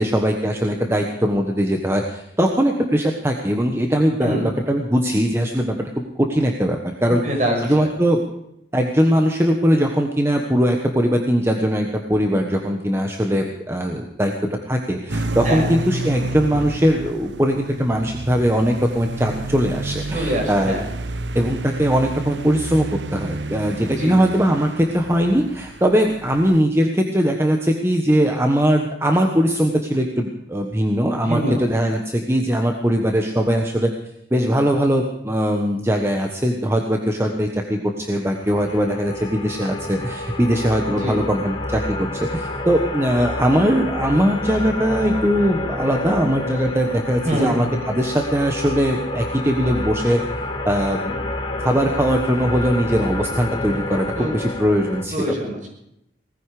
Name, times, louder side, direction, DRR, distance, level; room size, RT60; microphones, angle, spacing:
voice 1, 0.0-7.2 7.6-8.2 8.7-14.3 14.7-20.8 21.3-33.9 34.3-50.2 50.6-51.3 51.6-55.3, equal, 15° right, 3 dB, 1.3 m, -20 dB
voice 2, 7.2-7.9 15.4-15.7 20.1-20.8 24.0-24.2 31.2-31.6 40.9-41.2 47.2-47.6 54.1-54.3 55.1-55.7, equal, 45° right, 1 dB, 5.9 m, -24 dB
sound 1, 15.1-26.6, right 2 dB, 85° right, 0.9 m, -30 dB
sound 2, 38.3-55.0, left 2 dB, 30° left, 2.3 m, -29 dB
19.0 x 14.5 x 5.0 m, 0.77 s
head